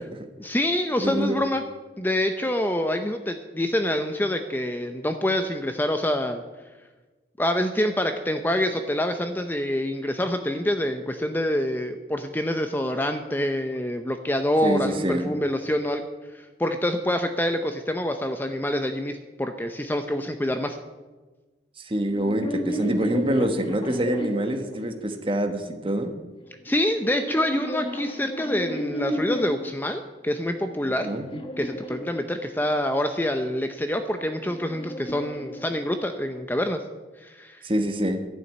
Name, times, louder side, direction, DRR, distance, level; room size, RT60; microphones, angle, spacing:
voice 1, 0.4-1.6 2.0-6.4 7.4-16.1 16.4-20.8 26.6-31.1 31.6-36.8 37.2-37.6, left 1 dB, 10° left, 7 dB, 0.6 m, -26 dB
voice 2, 1.0-1.4 14.6-15.3 21.8-26.1 30.8-31.3 37.6-38.2, right 1 dB, 30° right, 6 dB, 1.2 m, -26 dB
sound 1, 22.1-25.5 26.4-29.8 30.4-32.9 33.9-36.3, equal, 30° left, 1.2 m, -34 dB
12.0 x 7.0 x 9.2 m, 1.3 s
head